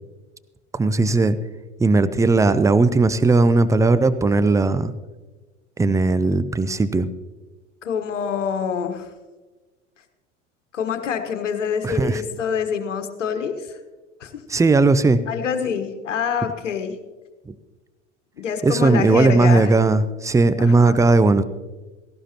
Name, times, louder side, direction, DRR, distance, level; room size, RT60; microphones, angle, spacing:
voice 1, 0.7-1.4 1.8-4.9 5.8-7.1 11.8-12.2 14.5-15.2 17.5-17.6 18.6-21.4, right 3 dB, 10° right, 14 dB, 0.5 m, -17 dB
voice 2, 7.8-9.1 10.7-13.8 14.2-14.4 15.3-17.0 18.4-19.7 20.6-21.0, left 7 dB, 75° left, 7 dB, 1.3 m, -26 dB
17.5 x 15.0 x 2.9 m, 1.2 s
figure-of-eight pair, 80°, 37 cm